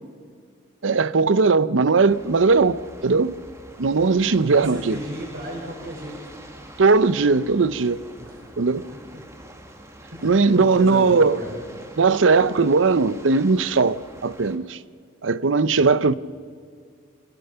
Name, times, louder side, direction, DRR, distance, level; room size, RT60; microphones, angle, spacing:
voice 1, 0.8-3.3 3.8-5.0 6.8-8.0 8.6-8.9 10.2-11.4 12.0-14.8 15.2-16.1, right 4 dB, 85° right, 0.6 m, -19 dB
sound 1, 2.1-14.6, right 1 dB, 15° right, 1.8 m, -44 dB
voice 2, 4.5-6.2 8.2-8.4 8.7-9.2 10.1-11.6 15.8-16.0, equal, 65° right, 5.4 m, -34 dB
27.0 x 16.5 x 6.9 m
head